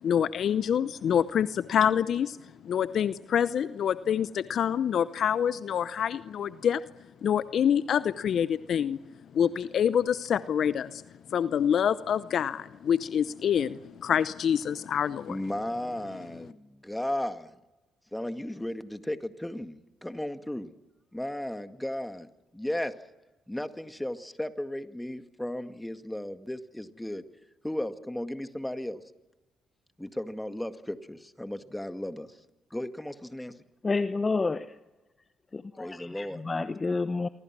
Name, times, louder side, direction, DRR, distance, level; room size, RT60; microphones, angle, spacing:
voice 1, 0.0-2.4 2.6-6.8 7.2-9.0 9.3-11.0 11.3-15.4, left 8 dB, 60° left, 15 dB, 0.7 m, -26 dB
voice 2, 15.3-17.6 18.1-20.7 21.1-22.3 22.5-22.9 23.5-27.2 27.6-29.0 30.0-32.3 32.7-33.6 35.8-36.4, left 1 dB, 10° left, 8 dB, 2.0 m, -35 dB
voice 3, 33.8-34.8 35.5-37.3, left 3 dB, 30° left, 12 dB, 0.9 m, -29 dB
27.5 x 24.0 x 6.1 m, 1.1 s
hypercardioid pair, 55°, 0 cm